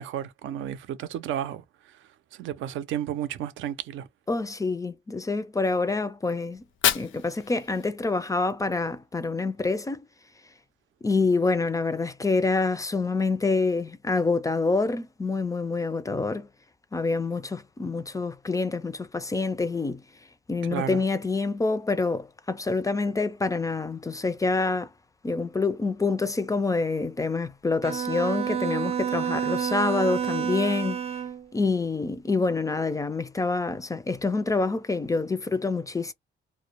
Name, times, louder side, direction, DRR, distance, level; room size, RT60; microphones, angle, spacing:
voice 1, 0.0-2.0 2.3-4.1 20.7-21.0, right 10 dB, 80° right, 0.5 m, -32 dB
voice 2, 4.3-6.6 6.9-10.0 11.0-16.5 16.9-20.0 20.5-24.9 25.2-31.0 31.5-36.1, left 3 dB, 15° left, 0.3 m, -27 dB
Fire, 6.5-8.5, left 10 dB, 80° left, 0.5 m, -30 dB
Bowed string instrument, 27.8-31.5, right 8 dB, 30° right, 0.6 m, -29 dB
2.1 x 2.0 x 2.8 m
cardioid pair, 90°, 20 cm